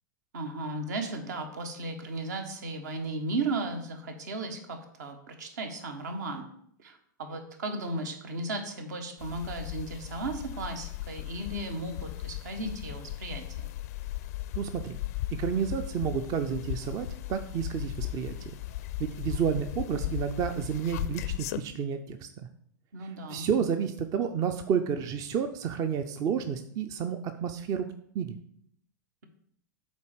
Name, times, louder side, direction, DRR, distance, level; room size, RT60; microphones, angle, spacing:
voice 1, 0.3-6.5 6.8-13.7 22.9-23.5, right 2 dB, 65° right, 5 dB, 1.3 m, -35 dB
sound 1, 9.2-21.6, left 15 dB, 55° left, 0.4 m, -37 dB
voice 2, 14.6-15.0 15.3-18.3 19.0-22.5 23.3-27.9 28.1-28.4, right 7 dB, 35° right, 8 dB, 0.6 m, -30 dB
8.2 x 4.4 x 5.1 m, 0.67 s
figure-of-eight pair, 95°, 10 cm